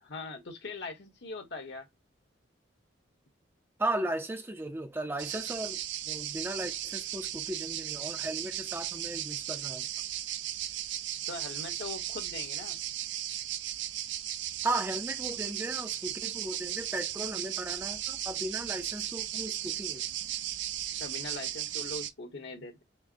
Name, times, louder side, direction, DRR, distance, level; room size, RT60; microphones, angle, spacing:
voice 1, 0.0-1.9 11.3-12.8 21.0-22.8, left 3 dB, 65° left, 1.3 m, -41 dB
voice 2, 3.8-5.8 6.1-9.9 14.6-20.0, right 1 dB, 10° right, 0.5 m, -36 dB
sound 1, 5.2-22.1, right 12 dB, 70° right, 0.4 m, -36 dB
5.8 x 2.1 x 2.6 m
head